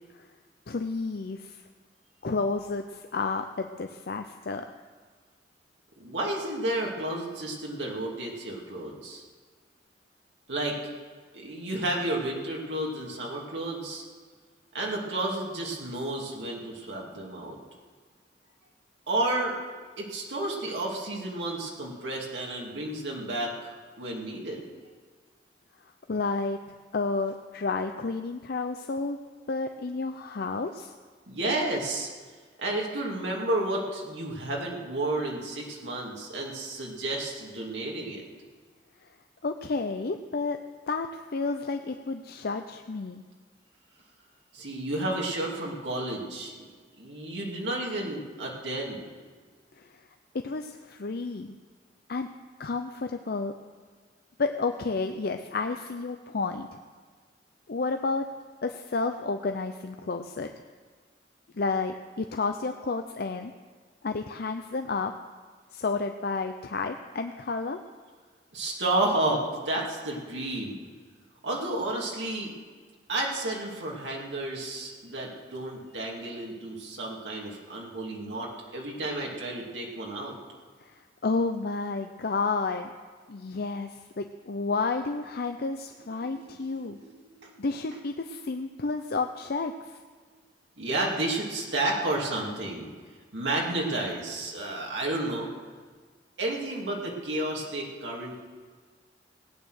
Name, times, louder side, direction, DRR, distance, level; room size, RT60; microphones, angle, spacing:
voice 1, 0.7-1.6 2.2-4.7 26.1-26.6 26.9-29.2 29.5-30.9 39.4-40.6 40.9-43.2 49.8-49.9 50.4-51.5 52.1-52.3 52.6-53.5 54.4-56.7 57.7-58.3 58.6-60.5 61.5-63.5 64.0-65.1 65.7-67.8 80.8-80.9 81.2-82.9 83.3-87.0 87.6-90.0, left 3 dB, 60° left, 6 dB, 0.6 m, -31 dB
voice 2, 6.0-9.2 10.5-10.8 11.3-14.0 14.7-17.6 19.1-19.6 20.0-24.6 31.3-32.1 32.6-38.2 44.5-46.6 47.0-49.0 68.5-70.8 71.4-72.5 73.1-80.4 86.8-87.0 87.4-87.5 90.8-92.9 93.3-95.5 96.4-98.4, right 2 dB, 85° right, -2 dB, 2.6 m, -31 dB
17.5 x 9.2 x 6.4 m, 1.5 s
head